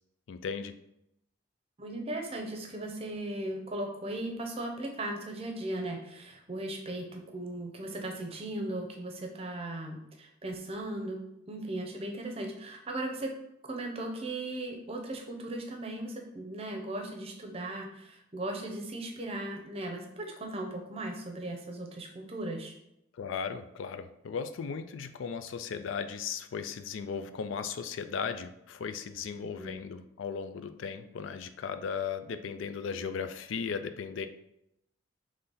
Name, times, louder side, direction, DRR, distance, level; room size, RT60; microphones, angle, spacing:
voice 1, 0.3-0.7 23.2-34.3, left 6 dB, 85° left, 10 dB, 0.4 m, -36 dB
voice 2, 1.8-13.3 13.7-22.7 29.3-29.9, right 1 dB, 30° right, 2 dB, 0.7 m, -37 dB
3.8 x 3.2 x 4.1 m, 0.81 s
head